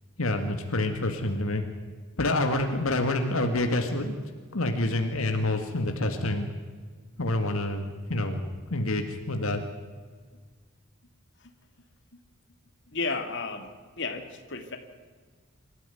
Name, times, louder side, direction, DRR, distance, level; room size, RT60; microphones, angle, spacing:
voice 1, 0.2-1.6 2.2-4.2 4.5-6.5 7.2-8.4 8.6-9.6, left 2 dB, 80° left, 5 dB, 2.0 m, -27 dB
voice 2, 12.9-13.7 14.0-14.8, left 4 dB, 55° left, 6 dB, 2.3 m, -32 dB
25.5 x 14.0 x 9.3 m, 1.6 s
head